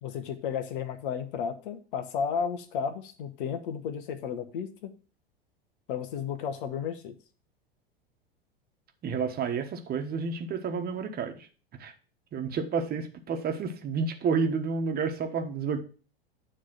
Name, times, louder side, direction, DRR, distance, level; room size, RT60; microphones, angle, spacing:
voice 1, 0.0-4.9 5.9-7.1, left 7 dB, 60° left, 9 dB, 1.1 m, -33 dB
voice 2, 9.0-11.5 11.8-11.9 12.3-15.8, right 5 dB, 30° right, 5 dB, 1.3 m, -30 dB
9.6 x 3.4 x 6.2 m, 0.37 s
figure-of-eight pair, 85°, 30 cm